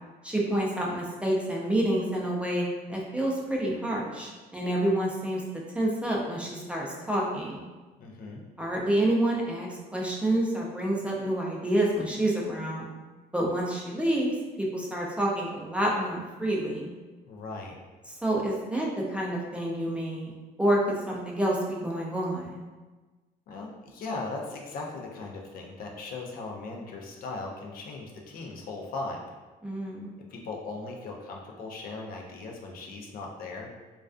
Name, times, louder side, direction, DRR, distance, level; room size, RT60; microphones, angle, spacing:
voice 1, 0.2-5.4 5.7-7.6 8.6-12.9 13.3-14.3 14.6-16.9 18.2-22.6 29.6-30.1, right 1 dB, 5° right, -3 dB, 0.4 m, -28 dB
voice 2, 8.0-8.4 17.2-17.8 23.5-29.2 30.3-33.7, left 3 dB, 60° left, 0 dB, 0.5 m, -38 dB
2.3 x 2.3 x 2.4 m, 1.3 s
cardioid pair, 110°, 17 cm